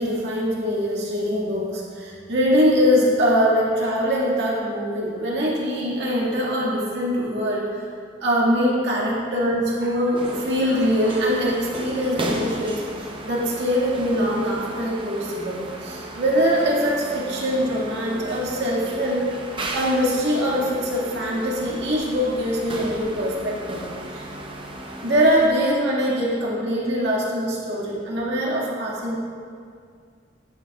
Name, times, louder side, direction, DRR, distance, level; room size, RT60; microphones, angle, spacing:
voice 1, 0.0-7.8 8.2-12.8 13.2-15.6 15.8-19.3 19.7-23.8 24.1-24.2 25.0-29.3, equal, 65° right, -5 dB, 2.0 m, -23 dB
sound 1, 10.1-25.5, right 1 dB, 25° right, 0.7 m, -35 dB
10.5 x 9.1 x 2.4 m, 2.2 s
head